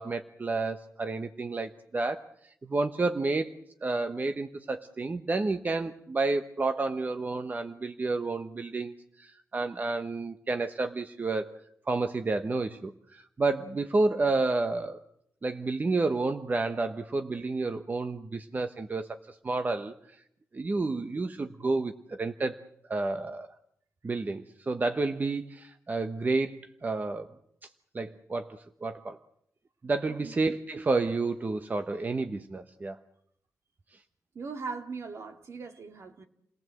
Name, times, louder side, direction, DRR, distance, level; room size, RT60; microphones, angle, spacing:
voice 1, 0.0-2.3 2.6-3.5 3.8-11.5 11.9-15.0 15.4-19.9 20.5-22.6 22.9-23.5 24.0-26.6 26.8-27.3 27.9-29.2 29.8-33.0, right 3 dB, 35° right, 1.1 m, -30 dB
voice 2, 34.3-36.2, right 4 dB, 60° right, 2.3 m, -39 dB
29.0 x 18.5 x 7.8 m
wide cardioid pair, 105°, 5 cm